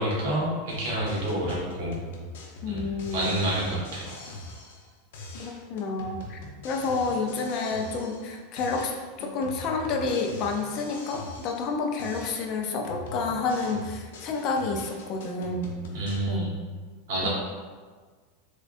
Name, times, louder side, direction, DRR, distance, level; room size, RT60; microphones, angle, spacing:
voice 1, 0.0-1.9 2.7-2.8 3.1-4.1 15.9-16.5 17.1-17.3, right 1 dB, 70° right, -5 dB, 1.4 m, -28 dB
sound 1, 0.7-4.9 5.1-8.3 8.6-11.7 12.0-16.2, left 2 dB, 75° left, 0.7 m, -42 dB
voice 2, 2.6-3.4 5.4-6.4 6.6-8.9 9.2-15.7 16.3-16.5 17.2-17.3, left 4 dB, 45° left, 3 dB, 0.5 m, -29 dB
3.6 x 3.5 x 2.6 m, 1.5 s
supercardioid pair, 140°, 0 cm